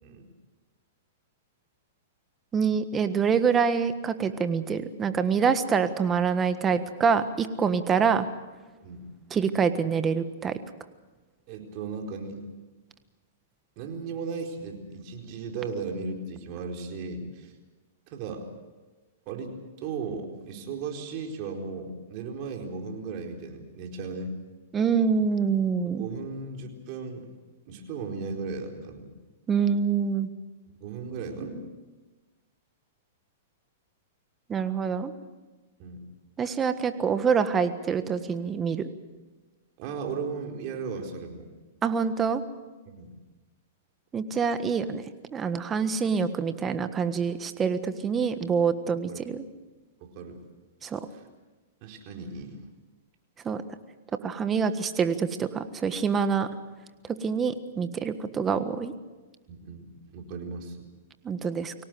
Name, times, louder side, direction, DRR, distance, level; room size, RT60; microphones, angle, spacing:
voice 1, 2.5-8.3 9.3-10.5 24.7-26.1 29.5-30.3 34.5-35.1 36.4-38.9 41.8-42.4 44.1-45.0 45.3-49.4 50.8-51.0 53.4-53.6 54.2-56.5 57.2-58.9 61.2-61.7, right 6 dB, 20° right, 10 dB, 1.5 m, -26 dB
voice 2, 11.5-12.4 13.8-17.5 18.1-18.4 19.3-24.3 25.9-27.3 27.7-29.1 30.8-31.6 35.8-36.0 39.8-41.5 42.9-43.1 46.0-46.3 49.1-49.2 50.0-50.4 51.1-51.2 51.8-52.6 59.5-60.9, right 4 dB, 45° right, 2 dB, 4.3 m, -36 dB
24.0 x 18.0 x 7.9 m, 1.2 s
hypercardioid pair, 130°, 0 cm